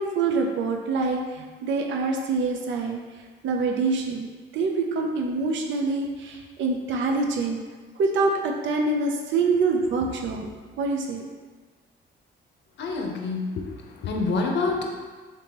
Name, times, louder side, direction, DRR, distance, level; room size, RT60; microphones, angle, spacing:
voice 1, 0.0-3.0 3.4-7.6 8.0-10.5 10.8-11.2, right 3 dB, 70° right, 2 dB, 0.5 m, -25 dB
voice 2, 12.8-15.0, left 3 dB, 60° left, 1 dB, 0.6 m, -27 dB
3.5 x 2.9 x 2.9 m, 1.4 s
cardioid pair, 90°, 20 cm